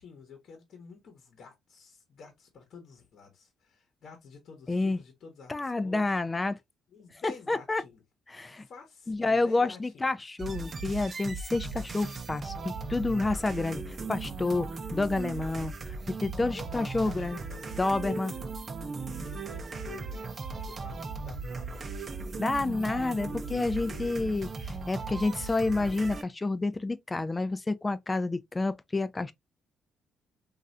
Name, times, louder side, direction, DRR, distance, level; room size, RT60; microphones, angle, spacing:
voice 1, 0.0-6.1 6.9-8.0 8.5-10.1 16.4-18.4 19.1-21.9 23.2-24.2, left 5 dB, 60° left, 0.9 m, -50 dB
voice 2, 4.7-5.0 5.5-6.6 7.2-7.8 8.3-8.7 9.1-17.4 17.8-18.3 22.4-29.3, left 3 dB, 20° left, 0.4 m, -29 dB
sound 1, 10.4-26.2, right 4 dB, 40° right, 0.6 m, -37 dB
3.1 x 2.4 x 2.5 m
cardioid pair, 90°, 0 cm